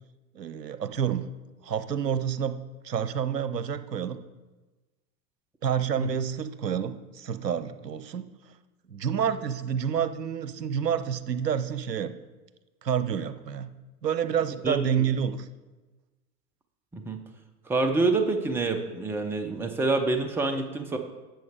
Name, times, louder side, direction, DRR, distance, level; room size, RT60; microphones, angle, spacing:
voice 1, 0.3-1.2 1.6-2.6 2.8-4.2 5.6-8.3 8.9-12.1 12.8-13.7 14.0-15.5, right 8 dB, 90° right, 11 dB, 0.7 m, -28 dB
voice 2, 17.7-21.0, right 3 dB, 5° right, 6 dB, 0.5 m, -27 dB
10.5 x 7.6 x 3.6 m, 1.2 s
figure-of-eight pair, 95°, 48 cm